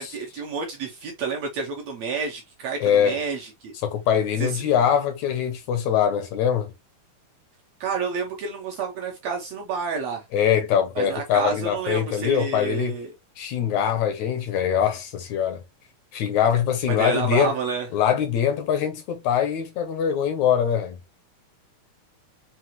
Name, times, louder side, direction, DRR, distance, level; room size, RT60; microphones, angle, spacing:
voice 1, 0.0-3.7 4.4-4.6 7.8-10.2 11.0-13.1 16.9-17.9, right 5 dB, 75° right, 1.6 m, -29 dB
voice 2, 2.8-3.2 3.8-6.7 10.3-13.0 13.4-15.6 16.1-17.5 17.9-21.0, left 8 dB, 75° left, 1.8 m, -23 dB
5.6 x 2.4 x 2.9 m
omnidirectional pair, 3.6 m